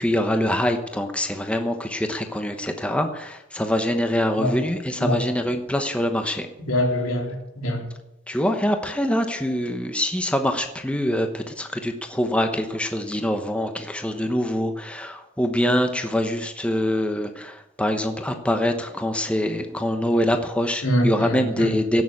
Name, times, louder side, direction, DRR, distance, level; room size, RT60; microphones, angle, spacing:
voice 1, 0.0-6.5 8.3-22.0, equal, 5° left, 6 dB, 1.0 m, -24 dB
voice 2, 6.6-7.8 20.8-21.7, equal, 90° left, 1 dB, 3.5 m, -24 dB
17.0 x 7.0 x 8.6 m, 0.93 s
head